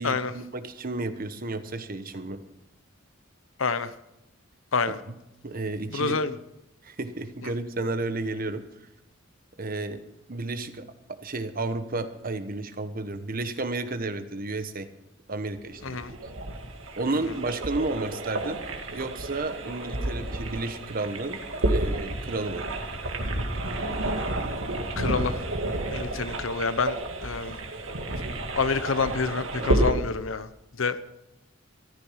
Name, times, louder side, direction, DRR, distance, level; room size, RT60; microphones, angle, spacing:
voice 1, 0.0-2.4 4.9-5.0 5.4-6.2 6.8-8.6 9.6-10.0 10.3-10.8 11.2-14.9 15.3-16.2 17.0-18.6 18.9-21.4 21.7-22.6, right 2 dB, 45° right, 10 dB, 1.2 m, -32 dB
voice 2, 3.6-3.9 4.7-5.0 5.9-6.3 7.4-7.5 15.8-16.1 25.0-25.4 25.9-27.6 28.5-30.5 30.8-31.0, left 4 dB, 80° left, 13 dB, 0.9 m, -27 dB
sound 1, 15.5-29.9, right 1 dB, 85° right, 2.1 m, -30 dB
14.0 x 13.5 x 5.7 m, 0.89 s
head